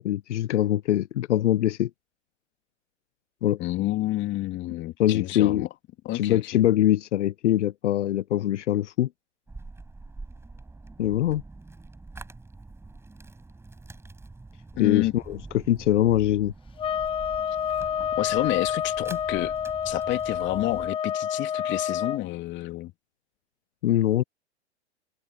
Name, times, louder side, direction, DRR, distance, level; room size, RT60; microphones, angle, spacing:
voice 1, 0.0-1.9 3.4-3.6 5.0-5.7 6.1-9.1 11.0-11.4 14.8-16.5 23.8-24.2, left 13 dB, 80° left, 0.6 m, -23 dB
voice 2, 3.6-5.7 6.0-6.6 14.7-15.1 18.2-19.5 19.8-22.9, left 16 dB, 35° left, 2.9 m, -29 dB
sound 1, 9.5-20.9, right 3 dB, 5° right, 6.4 m, -45 dB
sound 2, 16.8-22.2, left 9 dB, 15° left, 0.8 m, -28 dB
hypercardioid pair, 125°, 35 cm